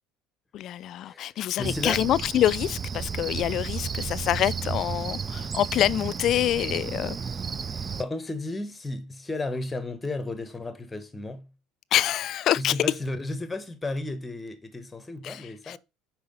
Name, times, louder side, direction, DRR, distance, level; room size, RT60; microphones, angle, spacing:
voice 1, 0.5-7.2 11.9-12.7 15.2-15.8, left 12 dB, 50° left, 0.3 m, -26 dB
voice 2, 1.6-2.0 8.0-11.5 12.6-15.8, left 2 dB, 15° left, 1.0 m, -33 dB
Cricket, 1.6-8.0, right 6 dB, 25° right, 0.4 m, -33 dB
5.6 x 4.7 x 5.3 m
supercardioid pair, 120°, 0 cm